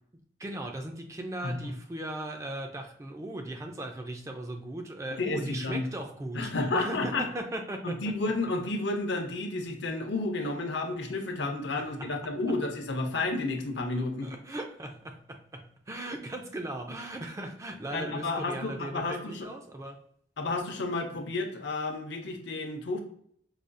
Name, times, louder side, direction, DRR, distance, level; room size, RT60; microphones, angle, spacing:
voice 1, 0.4-8.0 12.0-12.3 14.2-20.0, right 1 dB, 15° right, 4 dB, 0.3 m, -38 dB
voice 2, 5.2-5.8 6.3-7.3 7.8-14.3 17.9-19.5 20.4-23.0, left 2 dB, 70° left, 4 dB, 0.6 m, -31 dB
4.8 x 2.3 x 2.5 m, 0.65 s
head